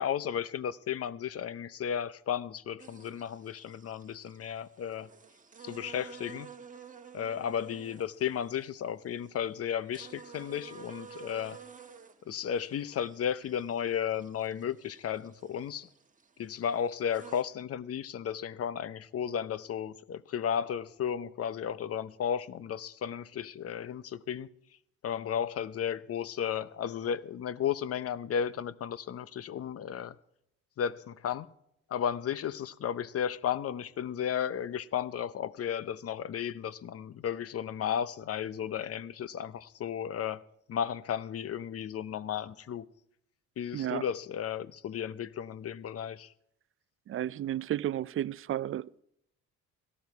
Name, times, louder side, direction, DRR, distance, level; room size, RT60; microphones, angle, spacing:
voice 1, 0.0-5.1 5.6-6.5 7.1-11.6 12.3-15.9 16.4-24.5 25.0-30.2 30.8-31.5 31.9-40.4 40.7-42.9 43.6-46.3, left 8 dB, 50° left, 0.7 m, -34 dB
sound 1, 2.8-17.4, right 6 dB, 25° right, 1.4 m, -52 dB
voice 2, 43.7-44.0 47.1-49.0, right 12 dB, 45° right, 0.4 m, -33 dB
17.5 x 12.5 x 4.7 m
cardioid pair, 90°, 30 cm